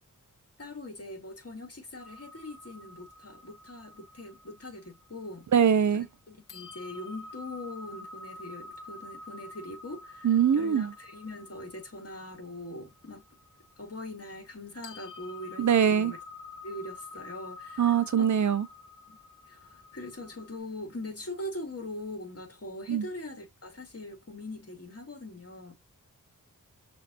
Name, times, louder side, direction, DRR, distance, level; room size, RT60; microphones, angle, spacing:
voice 1, 0.6-5.5 5.9-13.2 13.8-16.2 16.6-18.3 19.1-19.2 19.4-25.7, left 1 dB, 45° left, 2.3 m, -42 dB
sound 1, 2.0-6.1 6.5-14.6 14.8-20.6, left 3 dB, 70° left, 0.9 m, -48 dB
voice 2, 5.5-6.1 10.2-10.9 15.6-16.1 17.8-18.7 22.9-23.0, right 8 dB, 60° right, 0.7 m, -23 dB
6.2 x 2.9 x 2.5 m
cardioid pair, 50°, 33 cm